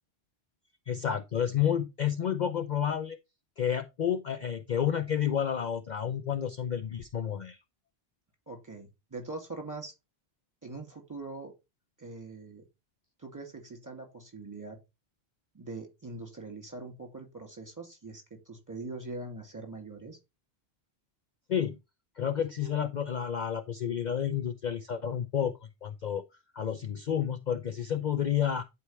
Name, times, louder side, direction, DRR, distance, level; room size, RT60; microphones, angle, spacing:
voice 1, 0.9-3.2 3.6-7.6 21.5-21.8 22.2-26.2 26.5-28.6, left 9 dB, 50° left, 0.7 m, -30 dB
voice 2, 8.5-9.9 10.6-11.5 12.0-12.6 13.2-14.8 15.5-20.2, right 3 dB, 15° right, 2.5 m, -42 dB
11.5 x 4.7 x 3.2 m
omnidirectional pair, 1.1 m